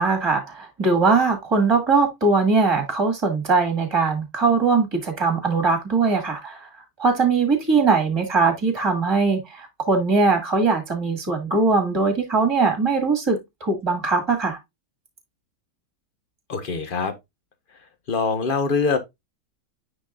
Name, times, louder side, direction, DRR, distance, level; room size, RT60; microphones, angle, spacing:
voice 1, 0.0-6.7 7.0-14.6, right 4 dB, 15° right, 1.9 m, -21 dB
voice 2, 16.5-17.1 18.1-19.0, left 4 dB, 45° left, 0.7 m, -23 dB
9.9 x 4.1 x 2.3 m
omnidirectional pair, 2.2 m